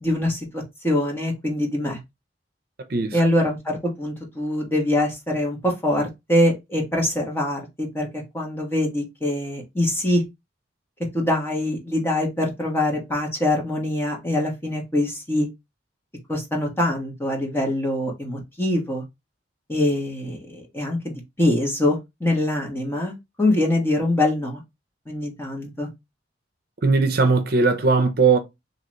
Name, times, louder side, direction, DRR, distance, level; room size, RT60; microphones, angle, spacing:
voice 1, 0.0-2.0 3.1-10.2 11.1-15.5 16.3-19.0 19.7-24.6 25.1-25.9, left 1 dB, 15° left, 1.2 m, -24 dB
voice 2, 2.9-3.2 26.8-28.4, right 4 dB, 55° right, 0.6 m, -19 dB
3.8 x 2.9 x 3.0 m
head